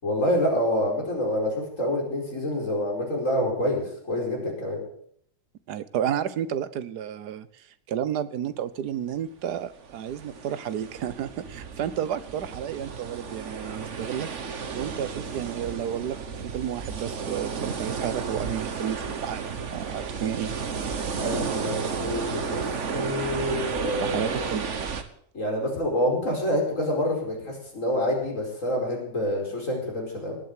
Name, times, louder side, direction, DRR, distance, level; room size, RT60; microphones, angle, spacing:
voice 1, 0.0-4.8 21.2-24.5 25.3-30.4, left 1 dB, 45° left, -1 dB, 5.3 m, -27 dB
voice 2, 5.7-14.3 14.7-16.2 16.4-20.5 24.0-24.7, right 9 dB, 70° right, 15 dB, 1.4 m, -31 dB
sound 1, 9.7-25.0, right 5 dB, 45° right, 1.4 m, -33 dB
18.5 x 7.7 x 8.3 m, 0.66 s
omnidirectional pair, 1.9 m